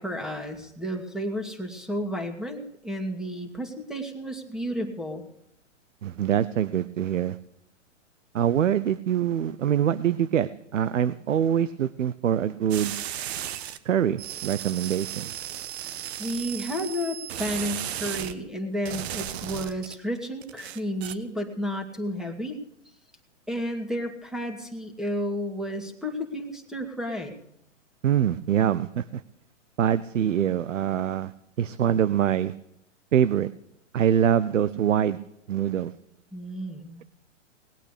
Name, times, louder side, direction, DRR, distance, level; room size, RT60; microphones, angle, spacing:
voice 1, 0.0-5.2 16.2-22.6 23.5-27.3 36.3-37.0, equal, ahead, 4 dB, 2.3 m, -32 dB
voice 2, 6.0-7.4 8.3-13.0 13.8-15.3 28.0-29.2 29.8-31.3 31.6-32.5 33.1-33.5 33.9-35.2 35.5-35.9, right 9 dB, 80° right, 15 dB, 0.8 m, -24 dB
sound 1, 12.7-13.8 14.2-18.4 18.9-20.0 20.4-21.1, right 11 dB, 55° right, 1.3 m, -35 dB
19.5 x 8.9 x 8.3 m, 0.76 s
hypercardioid pair, 130°, 38 cm